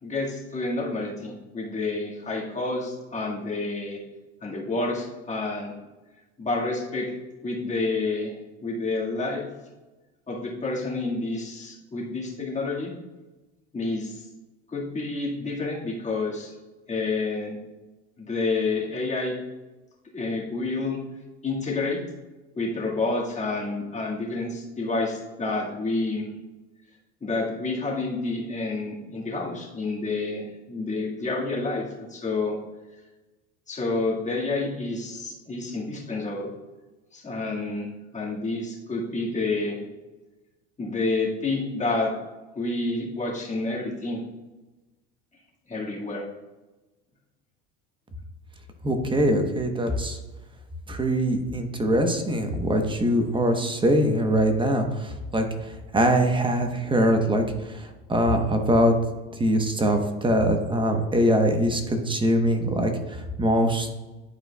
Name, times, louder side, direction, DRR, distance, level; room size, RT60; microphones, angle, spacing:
voice 1, 0.0-4.0 4.4-5.7 6.4-7.1 7.4-8.3 8.6-9.4 10.3-12.9 13.7-14.3 14.7-16.5 16.9-17.6 18.2-19.4 20.1-21.0 21.4-22.0 22.6-26.3 27.2-31.8 32.1-32.6 33.7-36.5 37.1-39.8 40.8-42.1 42.6-44.2 45.7-46.3, left 3 dB, 20° left, -3 dB, 1.8 m, -29 dB
voice 2, 48.8-50.2 50.9-58.9 59.4-63.9, equal, 15° right, 5 dB, 1.0 m, -23 dB
11.0 x 4.5 x 2.3 m, 1.1 s
supercardioid pair, 95°, 33 cm